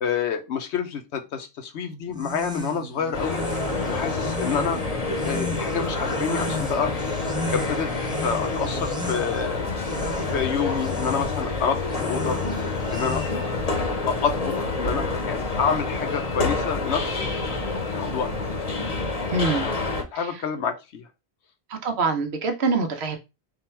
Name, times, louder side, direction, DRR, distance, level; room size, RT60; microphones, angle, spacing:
voice 1, 0.0-3.4 3.9-4.8 5.2-6.9 7.5-7.9 8.2-9.7 10.3-12.4 12.9-13.3 14.1-17.3 17.8-18.3 19.6-21.0, left 6 dB, 85° left, 1.0 m, -28 dB
sound 1, 2.1-13.6, equal, 5° right, 0.5 m, -36 dB
sound 2, 3.1-20.0, left 3 dB, 40° left, 0.8 m, -28 dB
voice 2, 19.3-19.7 20.1-20.3 21.7-23.2, right 3 dB, 70° right, 1.0 m, -25 dB
3.8 x 2.3 x 4.3 m
omnidirectional pair, 1.1 m